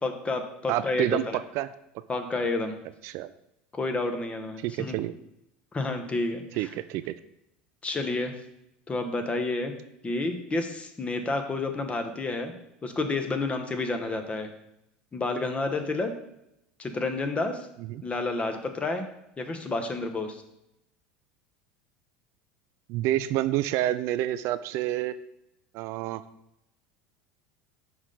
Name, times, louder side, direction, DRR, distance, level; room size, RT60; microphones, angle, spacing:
voice 1, 0.0-1.4 2.1-2.7 3.7-5.0 5.7-6.7 7.8-8.3 8.9-9.7 10.0-12.5 12.8-14.5 15.1-16.1 16.8-17.7 18.0-19.0 19.4-20.4, left 3 dB, 20° left, 6 dB, 1.0 m, -30 dB
voice 2, 0.7-1.7 3.0-3.3 4.6-5.1 6.5-7.1 17.9-18.0 22.9-25.2 25.7-26.2, right 14 dB, 60° right, 13 dB, 0.3 m, -28 dB
6.1 x 5.2 x 3.9 m, 0.84 s
hypercardioid pair, 90°, 5 cm